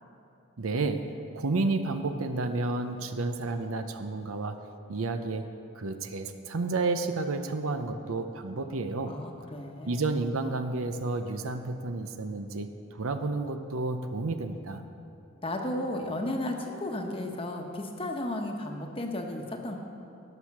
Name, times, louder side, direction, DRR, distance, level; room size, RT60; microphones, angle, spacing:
voice 1, 0.6-1.1 1.3-4.6 4.9-5.5 5.8-9.2 9.8-14.8, right 3 dB, 80° right, 8 dB, 0.7 m, -31 dB
voice 2, 9.1-10.1 15.4-19.8, left 1 dB, 25° left, 2 dB, 1.1 m, -34 dB
19.0 x 6.6 x 6.0 m, 2.6 s
head